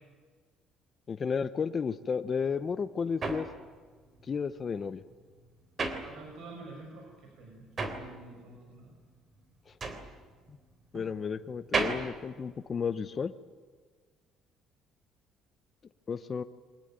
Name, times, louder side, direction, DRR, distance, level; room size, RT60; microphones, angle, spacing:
voice 1, 1.1-3.5 4.3-5.0 10.9-13.3 16.1-16.4, left 6 dB, 30° left, 10 dB, 0.9 m, -32 dB
sound 1, 2.4-6.7 7.0-13.3, right 3 dB, 35° right, 3.3 m, -36 dB
voice 2, 6.0-8.9 10.9-11.1, right 3 dB, 65° right, 1 dB, 6.0 m, -48 dB
23.5 x 20.0 x 9.1 m, 1.5 s
cardioid pair, 125°, 0 cm